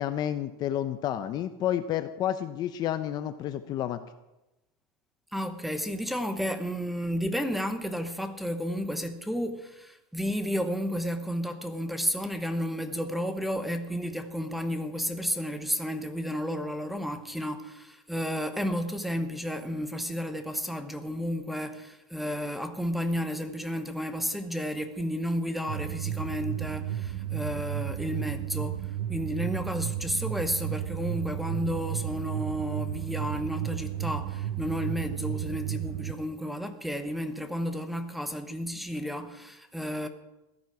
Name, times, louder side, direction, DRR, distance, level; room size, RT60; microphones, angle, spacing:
voice 1, 0.0-4.0, left 11 dB, 30° left, 0.6 m, -30 dB
voice 2, 5.3-40.1, equal, ahead, 0.9 m, -32 dB
sound 1, 25.7-36.1, right 11 dB, 55° right, 0.9 m, -33 dB
16.5 x 12.5 x 4.9 m
supercardioid pair, 150°, 13 cm